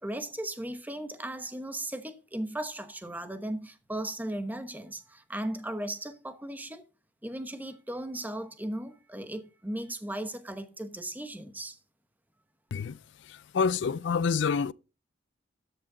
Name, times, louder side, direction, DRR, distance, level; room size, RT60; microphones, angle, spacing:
voice 1, 0.0-6.8 7.2-11.8, right 1 dB, 10° right, 1.0 m, -36 dB
voice 2, 13.3-14.7, left 5 dB, 65° left, 0.4 m, -27 dB
13.0 x 6.4 x 3.8 m
head